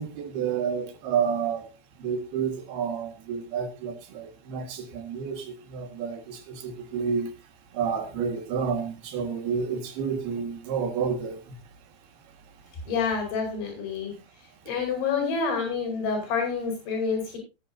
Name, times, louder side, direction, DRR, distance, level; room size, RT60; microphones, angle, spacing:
voice 1, 0.0-1.7 2.0-7.3 7.7-11.4, right 6 dB, 60° right, 5 dB, 3.5 m, -30 dB
voice 2, 12.9-14.1 14.7-17.4, left 5 dB, 75° left, 2 dB, 7.0 m, -28 dB
18.0 x 11.0 x 2.7 m, 0.28 s
omnidirectional pair, 5.3 m